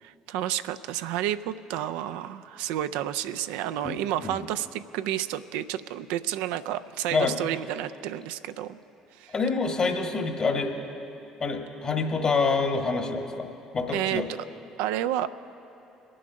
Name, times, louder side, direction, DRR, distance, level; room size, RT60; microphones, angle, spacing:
voice 1, 0.0-8.8 9.2-9.3 13.9-14.4 14.8-15.3, right 12 dB, 75° right, 12 dB, 0.3 m, -30 dB
voice 2, 9.3-10.7 11.4-13.5 13.7-14.3, left 4 dB, 45° left, 3 dB, 1.5 m, -26 dB
22.0 x 7.7 x 5.1 m, 2.9 s
hypercardioid pair, 60°, 2 cm